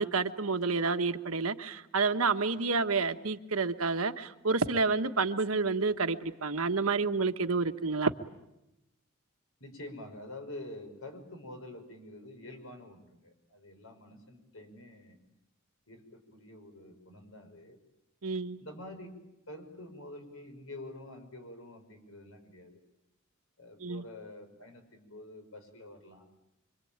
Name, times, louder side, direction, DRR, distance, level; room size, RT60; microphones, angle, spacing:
voice 1, 0.0-8.1 18.2-18.6 23.8-24.0, right 4 dB, 80° right, 8 dB, 1.3 m, -29 dB
voice 2, 9.6-15.2 15.9-17.8 18.6-19.1 19.5-22.8 23.6-26.3, left 1 dB, 75° left, 6 dB, 5.8 m, -47 dB
26.0 x 25.0 x 8.9 m, 0.90 s
head